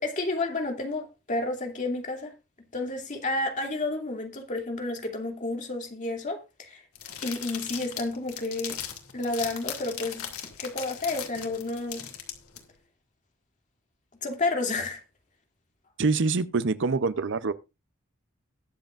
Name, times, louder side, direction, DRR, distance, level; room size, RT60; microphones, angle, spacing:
voice 1, 0.0-2.3 2.7-6.8 7.2-8.8 9.1-10.2 10.6-12.1 14.2-15.0, left 2 dB, 35° left, 2.7 m, -31 dB
sound 1, 7.0-12.6, left 9 dB, 85° left, 2.7 m, -38 dB
voice 2, 16.0-17.5, right 4 dB, 55° right, 0.6 m, -25 dB
21.0 x 7.8 x 2.5 m
head